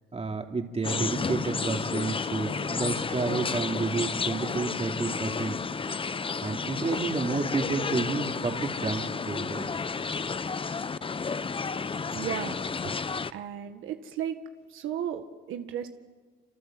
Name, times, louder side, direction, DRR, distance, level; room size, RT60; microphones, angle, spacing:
voice 1, 0.1-5.6 6.0-6.1 6.4-9.7, right 4 dB, 30° right, 3 dB, 3.3 m, -30 dB
sound 1, 0.8-13.3, left 5 dB, 25° left, 0.8 m, -32 dB
voice 2, 12.1-12.6 12.8-13.0 13.3-14.4 14.7-15.9, right 10 dB, 85° right, 7 dB, 1.7 m, -34 dB
27.5 x 26.5 x 7.8 m, 1.4 s
cardioid pair, 90°, 20 cm